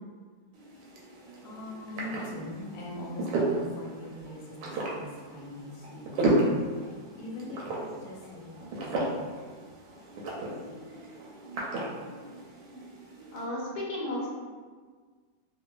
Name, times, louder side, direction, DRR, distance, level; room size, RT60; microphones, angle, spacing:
sound 1, 0.5-13.4, right 2 dB, 80° right, 1.2 m, -34 dB
voice 1, 1.4-6.0 6.4-9.2, left 1 dB, 85° left, -3 dB, 1.3 m, -43 dB
voice 2, 13.3-14.3, left 1 dB, 70° left, -5 dB, 1.1 m, -33 dB
3.2 x 2.1 x 2.2 m, 1.5 s
omnidirectional pair, 1.9 m